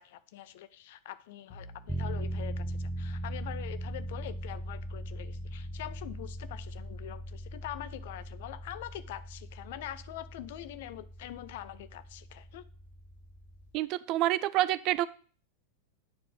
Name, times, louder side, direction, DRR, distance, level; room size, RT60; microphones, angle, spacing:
voice 1, 0.0-12.6, left 13 dB, 50° left, 14 dB, 0.5 m, -44 dB
Bowed string instrument, 1.5-6.6, left 1 dB, 20° left, 1.3 m, -58 dB
sound 1, 1.9-13.7, equal, 5° right, 0.7 m, -40 dB
voice 2, 13.7-15.1, right 15 dB, 40° right, 17 dB, 0.4 m, -27 dB
8.7 x 4.7 x 5.1 m, 0.41 s
figure-of-eight pair, 90°, 0 cm